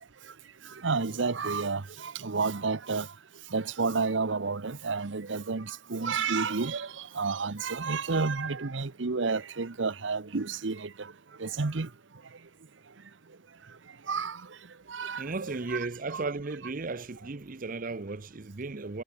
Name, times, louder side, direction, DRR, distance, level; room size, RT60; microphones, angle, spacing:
voice 1, 0.8-1.8 2.2-3.0 3.5-5.6 5.9-6.9 7.2-10.8 11.4-11.9 14.1-14.3 14.9-15.2 15.7-15.8 16.1-16.2, right 4 dB, 75° right, 0.9 m, -30 dB
voice 2, 15.2-19.0, right 3 dB, 45° right, 0.8 m, -35 dB
head